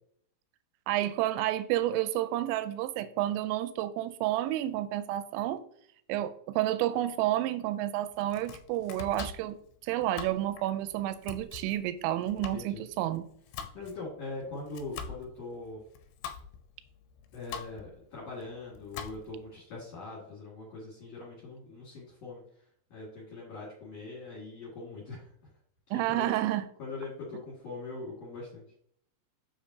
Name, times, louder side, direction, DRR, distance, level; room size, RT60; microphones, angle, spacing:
voice 1, 0.9-5.6 6.1-9.6 9.8-13.3 25.9-26.7, right 13 dB, 90° right, 3.0 m, -30 dB
Domestic sounds home sounds, 8.1-19.5, left 6 dB, 80° left, 2.6 m, -45 dB
voice 2, 12.3-12.8 13.7-15.8 17.3-22.4 22.9-25.3 25.9-26.3 26.8-28.7, left 3 dB, 45° left, 2.4 m, -42 dB
7.1 x 6.8 x 2.8 m
omnidirectional pair, 5.3 m